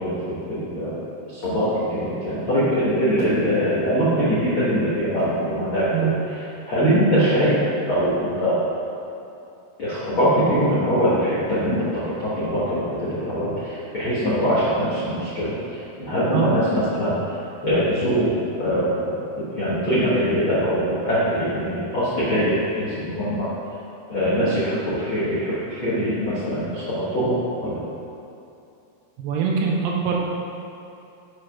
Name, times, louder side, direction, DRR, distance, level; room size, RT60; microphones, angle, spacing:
voice 1, 0.0-6.1 6.7-7.6 7.9-8.6 9.8-17.2 17.6-19.1 19.4-23.5 24.1-27.8, equal, 65° left, -11 dB, 1.2 m, -22 dB
voice 2, 29.2-30.2, right 6 dB, 90° right, -2 dB, 2.8 m, -23 dB
7.4 x 5.1 x 5.8 m, 2.8 s
omnidirectional pair, 4.7 m